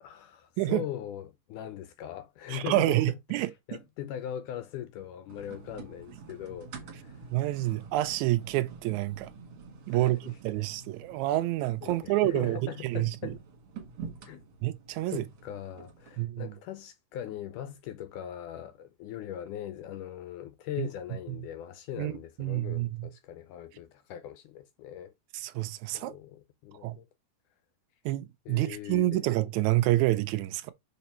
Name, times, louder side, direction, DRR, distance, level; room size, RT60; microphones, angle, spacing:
voice 1, 0.0-3.0 3.3-7.2 9.9-10.4 11.8-13.4 14.2-14.4 15.1-25.1 25.9-27.1 28.5-29.3, left 11 dB, 80° left, 2.0 m, -40 dB
voice 2, 2.5-3.8 7.3-9.3 9.9-10.2 10.4-13.3 14.6-15.2 16.2-16.5 20.8-20.9 21.3-21.4 22.0-22.1 22.4-23.1 25.3-26.2 26.8-27.0 28.0-30.7, right 16 dB, 85° right, 1.7 m, -28 dB
sound 1, 5.3-16.2, right 5 dB, 50° right, 1.9 m, -48 dB
5.8 x 4.1 x 4.3 m
omnidirectional pair, 4.0 m